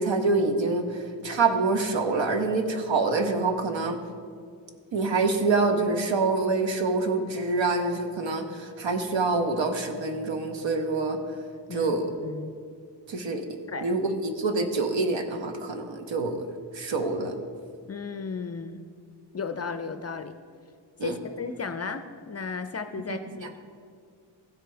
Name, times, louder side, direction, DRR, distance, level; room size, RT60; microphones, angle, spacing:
voice 1, 0.0-4.0 4.9-11.2 11.7-12.1 13.1-13.4 13.8-16.5 16.7-17.3 21.0-21.1 23.1-23.2, right 3 dB, 70° right, 5 dB, 1.1 m, -26 dB
voice 2, 11.7-12.5 13.7-13.9 17.9-18.8 19.3-20.3 21.0-23.6, left 5 dB, 35° left, 9 dB, 0.4 m, -35 dB
15.0 x 5.1 x 4.5 m, 2.2 s
wide cardioid pair, 125°, 46 cm